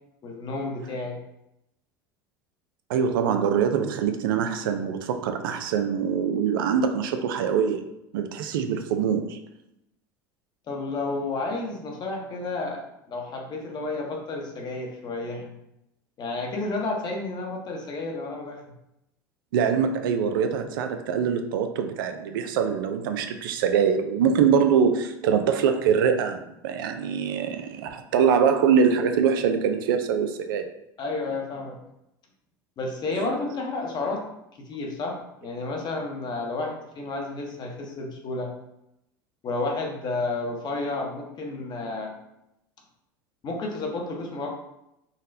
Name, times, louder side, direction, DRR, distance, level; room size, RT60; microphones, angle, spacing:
voice 1, 0.2-1.2 10.7-12.8 13.1-15.6 16.2-18.6 31.0-31.8 32.8-34.2 34.6-38.5 39.4-42.1 43.4-44.5, left 3 dB, 40° left, 1 dB, 0.8 m, -31 dB
voice 2, 2.9-9.4 19.5-30.7 33.1-33.3, right 7 dB, 80° right, 7 dB, 0.4 m, -24 dB
3.9 x 2.1 x 2.6 m, 0.84 s
hypercardioid pair, 90°, 11 cm